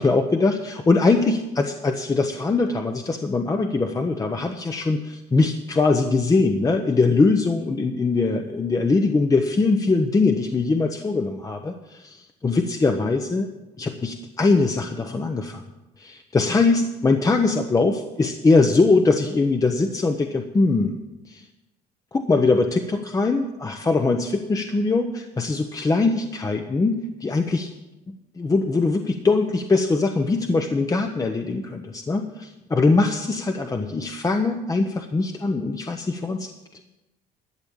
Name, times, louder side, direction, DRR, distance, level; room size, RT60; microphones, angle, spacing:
voice 1, 0.0-13.5 13.8-15.6 16.0-21.0 21.3-21.5 22.1-27.7 28.1-36.5, left 3 dB, 20° left, 5 dB, 0.8 m, -22 dB
12.0 x 6.9 x 8.7 m, 1.0 s
cardioid pair, 110°, 17 cm